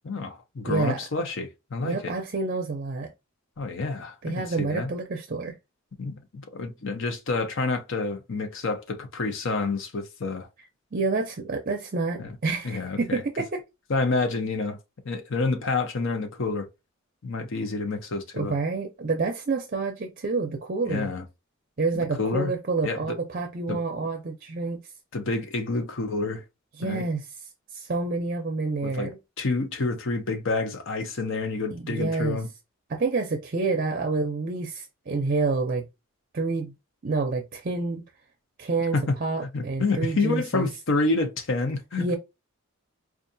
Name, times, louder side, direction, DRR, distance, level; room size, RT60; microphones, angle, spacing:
voice 1, 0.0-2.1 3.6-4.9 6.0-10.5 12.2-12.3 12.6-13.2 13.9-14.8 15.0-16.7 17.2-18.6 20.9-21.2 22.1-22.5 22.8-23.2 23.7-23.8 25.1-26.4 26.8-27.1 28.8-29.1 29.4-32.5 38.9-39.2 39.5-42.0, left 3 dB, 65° left, 0.7 m, -28 dB
voice 2, 0.7-1.0 1.8-3.1 4.2-5.5 10.9-13.6 18.3-21.1 21.8-24.8 26.8-27.3 27.7-29.2 31.7-32.4 32.9-35.9 36.3-36.7 37.0-38.0 38.6-38.9 39.2-40.7 42.0-42.2, right 3 dB, 45° right, 0.6 m, -28 dB
4.5 x 2.4 x 2.6 m
head